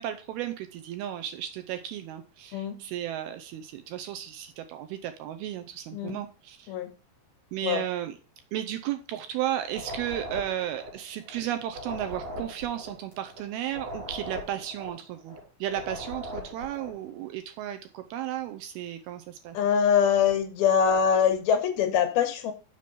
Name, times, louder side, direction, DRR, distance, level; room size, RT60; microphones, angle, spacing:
voice 1, 0.0-6.7 7.5-8.2 8.5-19.6, right 11 dB, 80° right, 8 dB, 2.3 m, -34 dB
sound 1, 9.6-11.4 11.6-15.4 15.6-17.0, equal, 50° right, 4.0 m, -40 dB
voice 2, 19.5-22.5, left 7 dB, 75° left, 6 dB, 2.5 m, -23 dB
6.8 x 5.2 x 6.6 m, 0.36 s
omnidirectional pair, 4.8 m